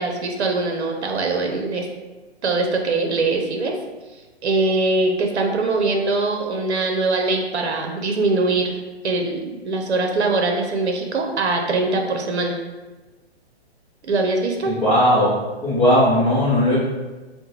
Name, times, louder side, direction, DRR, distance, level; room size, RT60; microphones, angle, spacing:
voice 1, 0.0-1.9 2.4-3.7 4.4-8.8 9.0-12.6 14.0-14.8, right 3 dB, 85° right, 2 dB, 0.7 m, -22 dB
voice 2, 14.6-15.3 15.6-16.8, left 1 dB, 5° left, -11 dB, 0.6 m, -17 dB
5.2 x 2.2 x 2.9 m, 1.2 s
hypercardioid pair, 160°, 33 cm